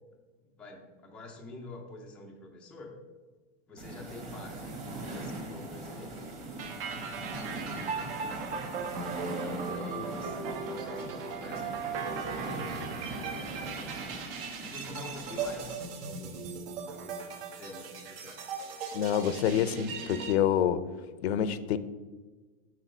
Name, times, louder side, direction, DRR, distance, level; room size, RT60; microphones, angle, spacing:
voice 1, 0.4-3.0 3.7-6.2 7.2-8.5 9.2-12.7 13.1-13.9 14.6-16.5 16.8-17.3 17.6-18.5, left 2 dB, 5° left, -1 dB, 0.4 m, -47 dB
sound 1, 3.8-15.7, right 2 dB, 20° right, 1.2 m, -41 dB
sound 2, 6.6-20.3, right 5 dB, 65° right, 1.1 m, -38 dB
voice 2, 18.9-20.8 21.2-21.8, left 9 dB, 75° left, 13 dB, 0.6 m, -27 dB
6.8 x 3.9 x 6.0 m, 1.3 s
supercardioid pair, 165°, 32 cm